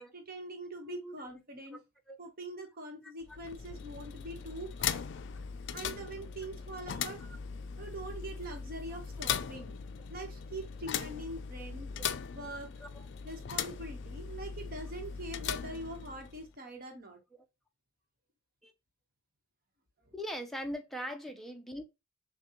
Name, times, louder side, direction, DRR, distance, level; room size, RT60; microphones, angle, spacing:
voice 1, 0.1-1.8 2.2-5.0 5.7-7.2 7.8-9.7 10.1-11.9 12.3-12.7 13.2-17.2, right 1 dB, 45° right, 1.1 m, -43 dB
voice 2, 0.9-1.2 1.7-1.8 2.1-2.2 3.0-3.4 7.2-7.4 12.0-12.1 12.8-13.1 18.6-18.7 20.1-21.8, equal, ahead, 0.6 m, -41 dB
sound 1, 3.2-16.5, left 7 dB, 60° left, 0.4 m, -39 dB
6.4 x 2.2 x 3.0 m
head